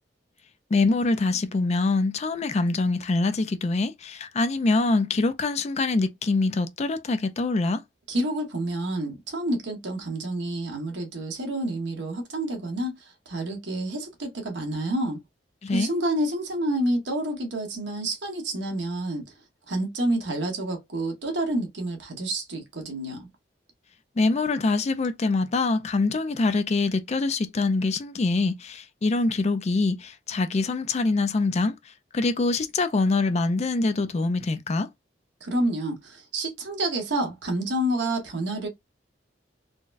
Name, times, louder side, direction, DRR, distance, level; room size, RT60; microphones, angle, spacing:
voice 1, 0.7-7.8 15.6-15.9 24.2-31.8 32.1-34.9, left 3 dB, 35° left, 0.4 m, -24 dB
voice 2, 8.1-15.2 15.7-19.3 19.7-23.3 35.4-38.7, right 1 dB, 70° right, 1.2 m, -28 dB
3.9 x 2.2 x 2.5 m
head